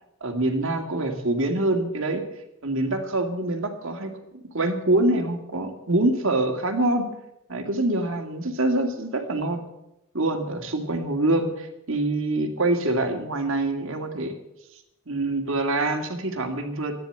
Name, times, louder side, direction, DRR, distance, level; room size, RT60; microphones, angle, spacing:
voice 1, 0.2-2.2 2.6-4.1 4.5-7.1 7.5-9.6 10.1-14.3 15.1-16.9, right 2 dB, 60° right, 5 dB, 2.2 m, -25 dB
14.5 x 9.9 x 7.8 m, 0.88 s
head